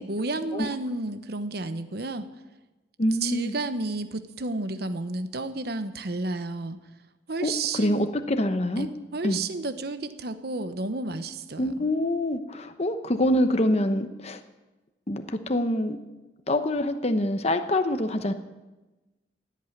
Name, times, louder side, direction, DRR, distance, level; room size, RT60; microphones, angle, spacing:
voice 1, 0.0-2.3 3.2-6.8 7.3-8.1 8.8-11.9, right 2 dB, 60° right, 10 dB, 1.0 m, -31 dB
voice 2, 3.0-3.5 7.4-8.9 9.2-9.4 11.6-14.4 15.1-16.0 16.5-18.3, left 1 dB, 35° left, 8 dB, 1.0 m, -25 dB
16.5 x 8.4 x 9.8 m, 1.1 s
head